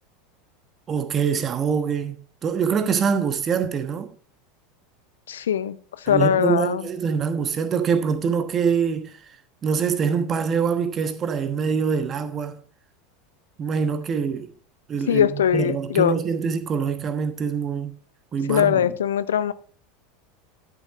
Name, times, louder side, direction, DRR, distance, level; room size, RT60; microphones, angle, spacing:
voice 1, 0.9-4.1 6.1-9.2 9.6-12.6 13.6-14.5 14.9-17.9 18.3-18.9, right 6 dB, 30° right, 1.2 m, -24 dB
voice 2, 5.3-6.9 15.1-16.1 18.5-19.5, left 9 dB, 70° left, 0.5 m, -21 dB
11.5 x 7.0 x 4.1 m
figure-of-eight pair, 80°, 0 cm